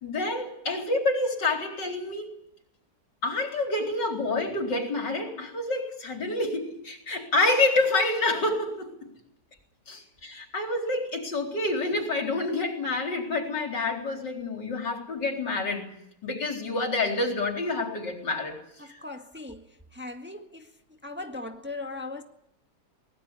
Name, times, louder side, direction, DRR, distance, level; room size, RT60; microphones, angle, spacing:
voice 1, 0.0-2.3 3.2-8.9 9.9-15.9 16.2-18.6 18.9-19.0, left 2 dB, 90° left, 4.8 m, -28 dB
voice 2, 18.8-19.6 19.9-20.7 21.0-22.2, left 2 dB, 5° right, 1.7 m, -38 dB
23.0 x 19.5 x 8.5 m
omnidirectional pair, 1.8 m